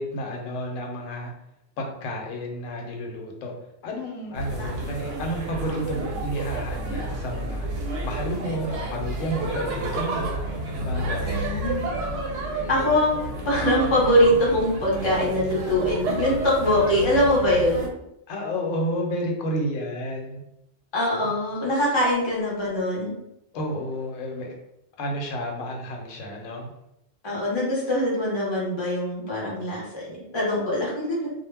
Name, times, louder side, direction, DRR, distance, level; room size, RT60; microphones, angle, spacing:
voice 1, 0.0-1.3 1.8-3.5 3.8-7.7 8.0-11.3 18.3-20.4 23.5-24.6 25.0-26.7, equal, 85° left, 1 dB, 1.0 m, -31 dB
sound 1, 4.3-17.9, right 2 dB, 75° right, 1.0 m, -30 dB
voice 2, 11.2-11.9 12.7-13.2 13.4-17.9 20.9-23.1 27.2-31.2, left 1 dB, 30° left, -5 dB, 0.6 m, -23 dB
2.2 x 2.0 x 3.3 m, 0.83 s
omnidirectional pair, 1.3 m